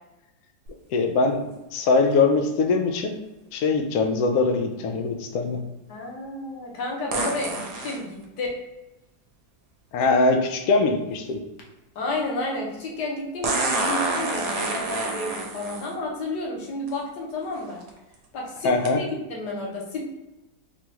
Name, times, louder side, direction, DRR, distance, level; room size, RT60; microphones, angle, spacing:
sound 1, 0.7-0.8 7.1-8.0 10.0-10.1 13.4-15.9 16.9-17.0 17.6-17.9 18.9-19.0, right 3 dB, 80° right, 1.3 m, -27 dB
voice 1, 0.9-3.2 3.5-5.6 9.9-11.4 18.6-19.0, left 3 dB, 90° left, 4 dB, 0.7 m, -22 dB
voice 2, 5.9-8.5 11.9-17.8 18.3-20.1, left 2 dB, 65° left, -1 dB, 1.4 m, -31 dB
4.2 x 2.3 x 3.0 m, 1.0 s
omnidirectional pair, 2.0 m